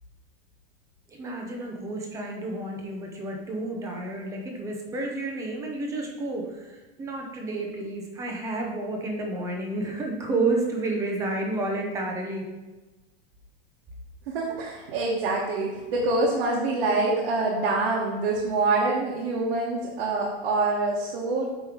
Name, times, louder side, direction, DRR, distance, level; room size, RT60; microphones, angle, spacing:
voice 1, 1.1-12.5, right 2 dB, 10° right, 1 dB, 0.6 m, -30 dB
voice 2, 14.3-21.5, right 3 dB, 60° right, -3 dB, 1.3 m, -25 dB
8.6 x 3.1 x 4.9 m, 1.2 s
supercardioid pair, 175°, 31 cm